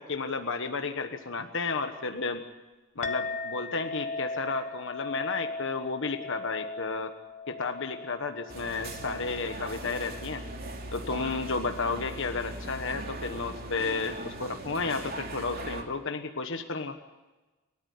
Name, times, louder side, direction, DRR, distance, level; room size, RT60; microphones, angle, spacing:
voice 1, 0.0-2.4 3.0-7.1 7.5-10.4 10.9-17.0, left 4 dB, 55° left, 7 dB, 1.3 m, -32 dB
Chink clink, 3.0-11.7, left 3 dB, 30° left, 1.1 m, -39 dB
sound 1, 8.5-15.8, right 2 dB, 45° right, 3.1 m, -39 dB
29.0 x 13.5 x 8.4 m, 1.1 s
head